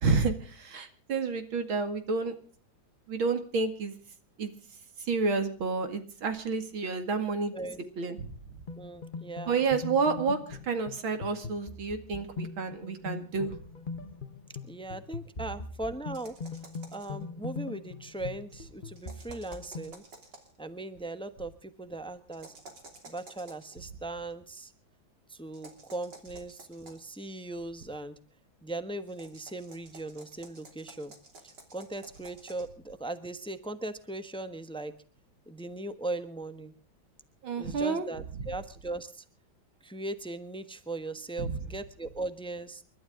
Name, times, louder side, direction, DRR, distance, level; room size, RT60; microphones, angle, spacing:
voice 1, 0.0-2.3 3.1-3.9 4.4-4.5 5.0-7.5 8.0-8.3 9.5-13.6 37.4-38.1 41.4-41.6, right 4 dB, 85° right, 8 dB, 3.0 m, -30 dB
voice 2, 7.5-8.2 8.8-9.6 14.7-16.3 16.9-20.0 20.6-22.6 23.0-24.7 25.3-28.1 28.6-31.1 31.7-34.9 35.5-36.7 37.6-39.2 39.8-42.8, right 2 dB, 5° left, 11 dB, 0.7 m, -39 dB
sound 1, 8.7-19.9, left 4 dB, 30° left, 1.0 m, -41 dB
sound 2, 16.1-17.2 19.0-20.6 22.3-23.8 25.5-27.2 29.1-32.7, right 2 dB, 60° right, 3.6 m, -52 dB
29.0 x 12.5 x 3.7 m, 0.41 s
omnidirectional pair, 2.2 m